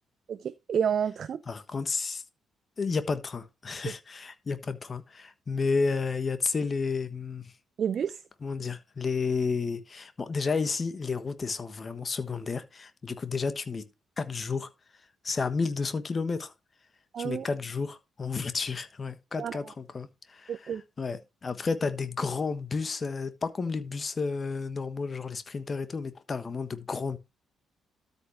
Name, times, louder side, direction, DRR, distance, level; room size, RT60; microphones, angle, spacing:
voice 1, 0.3-1.4 7.8-8.2 17.1-17.5 19.4-19.6 20.5-20.8, right 8 dB, 55° right, 0.5 m, -29 dB
voice 2, 1.5-2.2 2.8-7.5 8.4-13.9 14.2-14.7 15.2-16.5 17.2-27.2, left 4 dB, 40° left, 1.2 m, -31 dB
13.0 x 5.5 x 3.2 m
hypercardioid pair, 45°, 0 cm